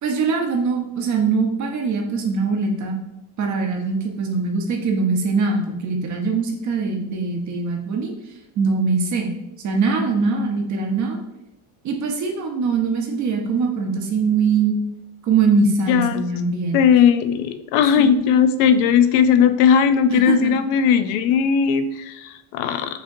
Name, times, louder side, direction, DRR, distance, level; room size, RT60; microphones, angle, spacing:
voice 1, 0.0-3.0 3.4-8.1 8.6-9.3 9.6-11.2 11.8-14.8 15.2-16.8 18.0-18.1 20.1-20.6, right 4 dB, 40° right, 3 dB, 0.7 m, -22 dB
voice 2, 15.9-16.2 16.7-23.0, left 7 dB, 90° left, 11 dB, 0.6 m, -17 dB
6.2 x 2.8 x 2.6 m, 0.87 s
cardioid pair, 145°, 48 cm